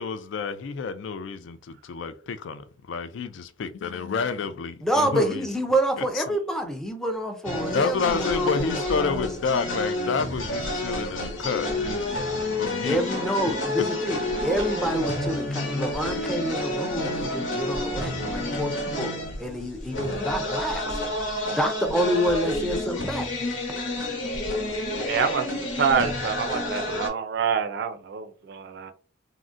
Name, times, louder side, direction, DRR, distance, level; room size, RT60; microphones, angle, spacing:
voice 1, 0.0-3.3 3.6-5.5 6.2-6.3 7.7-12.1 12.6-13.0, left 5 dB, 65° left, 0.3 m, -29 dB
voice 2, 4.8-9.3 12.8-19.1 19.4-20.9 21.5-23.3, equal, 5° left, 0.4 m, -27 dB
sound 1, 7.4-27.1, left 1 dB, 85° left, 1.0 m, -29 dB
voice 3, 25.1-28.9, right 6 dB, 55° right, 0.4 m, -27 dB
3.6 x 2.1 x 2.5 m
head